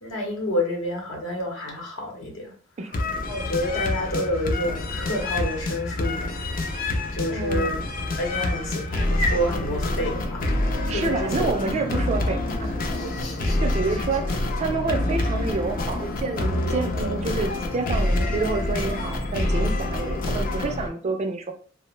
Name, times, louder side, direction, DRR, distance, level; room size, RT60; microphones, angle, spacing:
voice 1, 0.0-2.5 3.3-6.4 7.1-11.5 12.9-13.6 16.9-17.1, equal, 75° left, 0.8 m, -29 dB
sound 1, 2.9-20.9, left 2 dB, 45° left, 0.4 m, -27 dB
voice 2, 7.3-7.8 8.3-8.8 10.9-12.8 13.6-21.5, right 3 dB, 35° right, 0.3 m, -28 dB
2.4 x 2.0 x 3.1 m
head